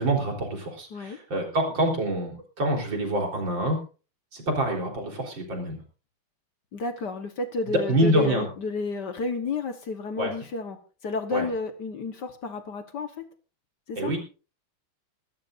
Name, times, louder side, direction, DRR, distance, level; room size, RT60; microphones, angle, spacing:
voice 1, 0.0-3.8 4.3-5.8 7.7-8.5 10.2-10.3 11.3-11.4 14.0-14.2, right 1 dB, 60° right, 1 dB, 4.7 m, -26 dB
voice 2, 6.7-10.8 11.0-13.3 13.9-14.1, left 3 dB, 55° left, 8 dB, 1.7 m, -31 dB
22.5 x 13.5 x 2.6 m, 0.35 s
omnidirectional pair, 2.4 m